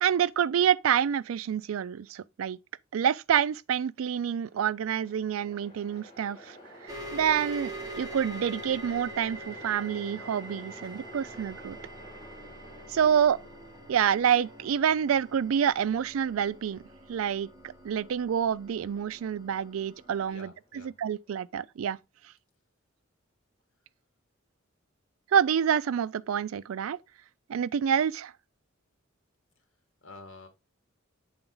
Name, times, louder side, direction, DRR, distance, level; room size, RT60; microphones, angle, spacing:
voice 1, 0.0-2.6 2.9-6.6 6.8-11.8 12.9-13.4 13.9-16.8 17.1-17.5 17.8-20.5 21.0-22.0 25.3-27.0 27.5-28.3, right 8 dB, 85° right, 0.4 m, -27 dB
Train, 4.1-21.3, equal, 25° left, 1.7 m, -52 dB
sound 1, 6.9-20.3, right 1 dB, 20° right, 1.6 m, -45 dB
voice 2, 12.9-13.5 20.1-21.0 29.6-29.7 30.0-30.5, left 2 dB, 75° left, 1.7 m, -50 dB
7.2 x 3.9 x 3.8 m
head